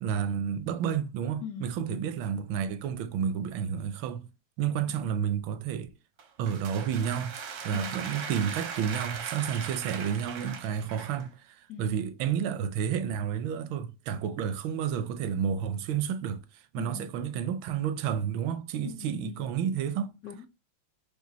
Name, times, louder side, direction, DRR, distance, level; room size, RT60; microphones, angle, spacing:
voice 1, 0.0-4.3 4.6-5.9 6.4-7.4 7.6-20.1, right 8 dB, 85° right, 1.3 m, -31 dB
voice 2, 1.4-2.1 4.9-5.2 7.7-8.1 11.7-12.0 16.8-17.1 18.8-19.5 20.2-20.5, left 8 dB, 70° left, 0.9 m, -42 dB
sound 1, 6.2-11.3, right 6 dB, 65° right, 0.7 m, -39 dB
5.6 x 2.3 x 4.0 m
omnidirectional pair, 2.1 m